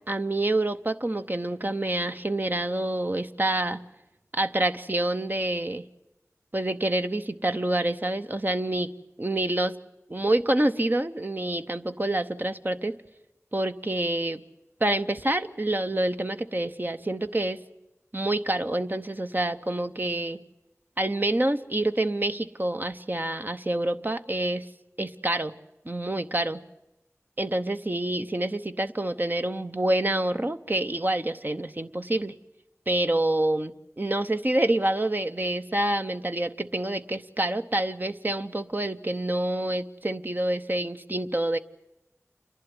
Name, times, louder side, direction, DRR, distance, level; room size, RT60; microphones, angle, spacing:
voice 1, 0.0-3.8 4.3-5.8 6.5-8.9 9.2-9.7 10.1-12.9 13.5-14.4 14.8-17.6 18.1-20.4 21.0-24.7 25.0-25.5 25.8-26.6 27.4-32.4 32.9-41.6, right 1 dB, 35° right, 9 dB, 0.8 m, -27 dB
28.0 x 11.5 x 9.6 m, 0.93 s
wide cardioid pair, 50°, 5 cm